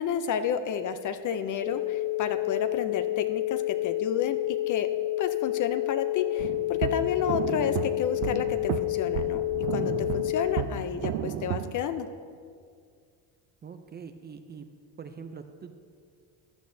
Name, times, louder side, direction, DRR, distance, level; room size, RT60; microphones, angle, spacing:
voice 1, 0.0-4.4 4.7-4.9 5.2-9.4 9.7-12.1, left 8 dB, 40° left, 10 dB, 0.5 m, -31 dB
sound 1, 1.6-10.6, left 17 dB, 85° left, 0.7 m, -29 dB
sound 2, 6.4-11.7, right 10 dB, 85° right, 0.7 m, -33 dB
voice 2, 13.6-14.7 15.0-15.8, right 6 dB, 25° right, 8 dB, 0.4 m, -43 dB
15.0 x 10.5 x 2.7 m, 2.1 s
cardioid pair, 130°, 48 cm